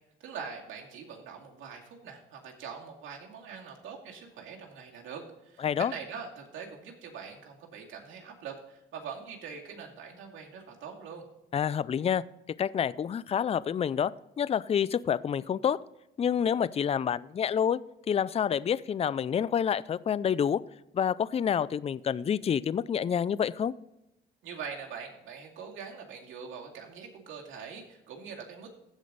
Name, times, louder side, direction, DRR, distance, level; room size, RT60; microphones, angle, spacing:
voice 1, 0.2-11.2 24.4-28.7, right 6 dB, 80° right, 0 dB, 2.4 m, -43 dB
voice 2, 5.6-5.9 11.5-12.2 12.6-14.1 14.4-15.8 16.2-17.8 18.1-20.6 20.9-23.7, left 8 dB, 30° left, 19 dB, 0.4 m, -28 dB
15.0 x 5.1 x 4.0 m, 0.87 s
cardioid pair, 90°, 20 cm